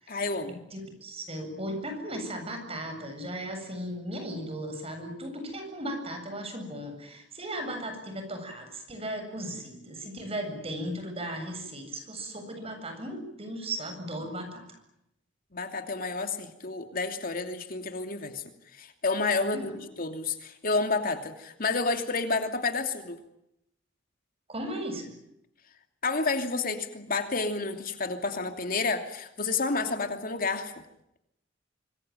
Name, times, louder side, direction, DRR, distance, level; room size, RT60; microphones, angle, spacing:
voice 1, 0.1-0.5 15.5-18.4 18.7-19.7 20.0-23.2 26.0-30.7, left 3 dB, 50° left, 6 dB, 2.8 m, -30 dB
voice 2, 0.7-14.7 19.5-19.7 24.5-25.1, right 1 dB, 35° right, 6 dB, 7.9 m, -36 dB
26.5 x 21.5 x 9.2 m, 0.80 s
head